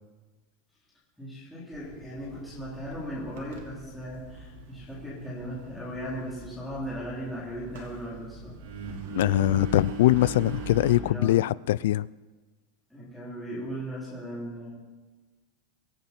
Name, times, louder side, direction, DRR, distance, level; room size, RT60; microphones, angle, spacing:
voice 1, 1.2-8.5 11.0-11.5 12.9-14.7, equal, ahead, -10 dB, 3.5 m, -37 dB
Engine, 1.7-11.0, right 4 dB, 85° right, 3.5 m, -40 dB
voice 2, 9.1-12.1, left 16 dB, 80° left, 22 dB, 0.4 m, -22 dB
24.0 x 9.0 x 4.4 m, 1.3 s
supercardioid pair, 165°, 0 cm